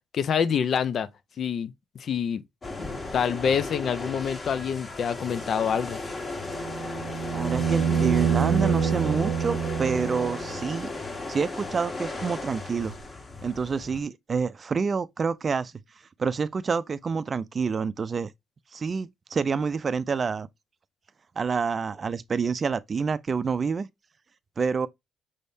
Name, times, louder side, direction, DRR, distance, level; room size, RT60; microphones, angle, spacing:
voice 1, 0.1-1.1 1.4-2.4 3.1-6.0, left 7 dB, 60° left, 0.5 m, -26 dB
sound 1, 2.6-14.0, left 3 dB, 35° left, 1.6 m, -36 dB
sound 2, 6.5-10.6 13.0-13.1, right 7 dB, 85° right, 0.7 m, -26 dB
voice 2, 7.3-10.9 11.3-12.9 13.4-15.7 16.2-18.3 18.7-20.5 21.4-23.9 24.6-24.9, right 5 dB, 40° right, 0.4 m, -28 dB
5.5 x 3.4 x 2.6 m
cardioid pair, 90°, 0 cm